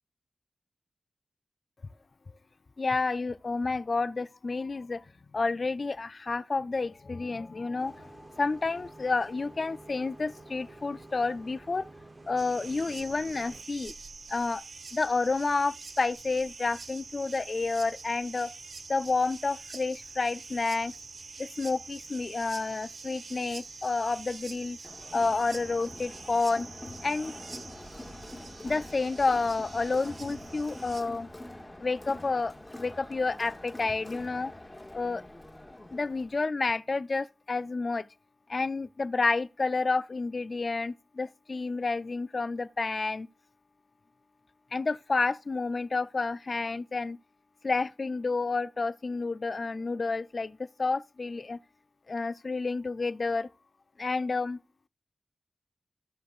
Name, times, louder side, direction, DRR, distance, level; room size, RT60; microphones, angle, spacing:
voice 1, 2.8-5.0 5.3-11.9 12.3-13.9 14.3-14.6 14.9-18.5 18.9-20.9 21.4-24.8 25.1-26.7 27.0-27.4 28.6-31.3 31.8-34.5 34.9-35.2 35.9-38.1 38.5-43.3 44.7-47.2 47.6-51.6 52.1-53.5 54.0-54.6, left 3 dB, 45° left, 0.3 m, -30 dB
Bus, 7.8-13.6, right 2 dB, 40° right, 0.9 m, -50 dB
sound 1, 12.4-31.0, right 4 dB, 70° right, 1.0 m, -46 dB
Crowd, 24.8-36.4, left 1 dB, 15° left, 1.0 m, -45 dB
15.0 x 6.6 x 2.4 m
wide cardioid pair, 90°, 0 cm